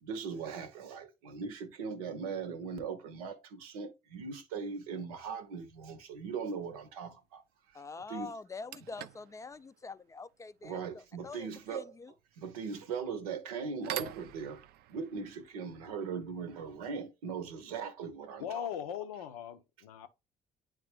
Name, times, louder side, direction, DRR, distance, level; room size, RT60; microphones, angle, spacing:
voice 1, 0.0-7.4 7.7-7.8 8.1-8.3 10.6-12.0 12.4-14.6 14.9-18.7, right 5 dB, 80° right, 0.8 m, -39 dB
sound 1, 5.4-5.6 7.7-7.8 8.3-17.0, right 13 dB, 60° right, 0.4 m, -48 dB
voice 2, 7.7-12.1, left 4 dB, 15° left, 0.3 m, -45 dB
voice 3, 18.4-20.1, left 9 dB, 80° left, 0.6 m, -39 dB
8.8 x 3.3 x 3.2 m
hypercardioid pair, 50°, 19 cm